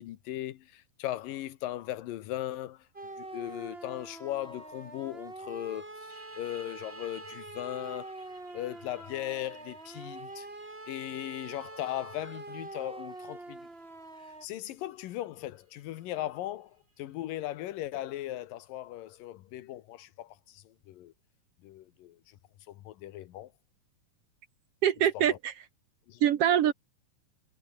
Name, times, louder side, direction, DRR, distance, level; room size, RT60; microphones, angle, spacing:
voice 1, 0.0-2.9 3.2-8.1 8.5-10.5 10.9-13.6 14.2-21.1 21.6-22.4 22.7-23.5 25.1-25.4 26.1-26.2, left 14 dB, 85° left, 2.8 m, -38 dB
sound 1, 2.9-14.5, right 2 dB, 15° right, 3.7 m, -45 dB
sound 2, 6.1-17.5, right 3 dB, 45° right, 9.1 m, -58 dB
voice 2, 24.8-25.5 26.2-26.7, right 10 dB, 65° right, 1.6 m, -24 dB
omnidirectional pair, 3.8 m